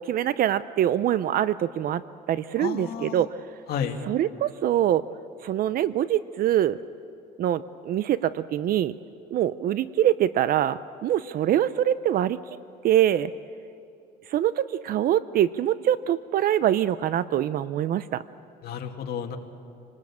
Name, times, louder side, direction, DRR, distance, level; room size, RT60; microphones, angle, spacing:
voice 1, 0.0-2.0 2.3-3.3 4.1-5.0 5.4-6.8 7.4-8.9 9.3-12.4 12.8-13.3 14.3-18.2, right 11 dB, 60° right, 15 dB, 0.6 m, -24 dB
voice 2, 2.6-3.3 3.7-4.0 18.6-19.4, left 8 dB, 65° left, 3 dB, 2.4 m, -31 dB
28.5 x 19.5 x 8.6 m, 2.6 s
cardioid pair, 110°, 17 cm